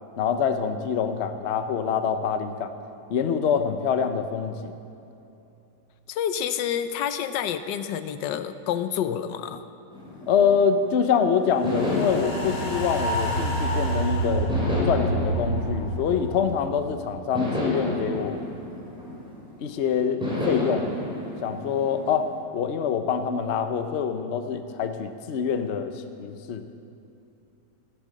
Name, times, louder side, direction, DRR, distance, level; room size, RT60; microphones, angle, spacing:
voice 1, 0.2-2.8 3.1-4.7 10.3-14.5 14.8-18.4 19.6-20.2 20.4-20.9 21.4-26.6, left 7 dB, 55° left, 8 dB, 0.8 m, -25 dB
voice 2, 6.1-9.6, left 9 dB, 85° left, 11 dB, 1.3 m, -28 dB
sound 1, 9.9-11.0 11.6-13.9 14.5-16.7 17.3-19.6 20.2-22.4, left 1 dB, 5° right, 3.3 m, -31 dB
sound 2, 11.6-18.0 18.3-18.4, right 1 dB, 25° left, 1.9 m, -28 dB
14.5 x 8.3 x 7.6 m, 2.8 s
omnidirectional pair, 1.9 m